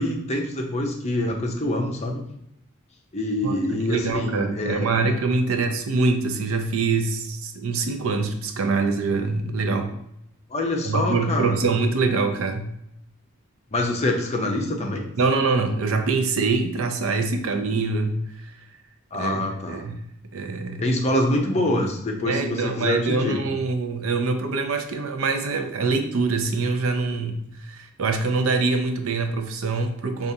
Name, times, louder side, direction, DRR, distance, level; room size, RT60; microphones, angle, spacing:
voice 1, 0.0-2.2 3.1-4.9 10.5-11.6 13.7-15.0 19.1-19.9 20.8-23.4, left 1 dB, 30° left, 1 dB, 0.6 m, -25 dB
voice 2, 3.4-9.9 10.8-12.7 15.2-18.5 19.1-20.0 20.3-20.8 21.6-21.9 22.3-30.3, right 3 dB, 70° right, 6 dB, 0.5 m, -24 dB
5.0 x 2.4 x 2.7 m, 0.78 s
head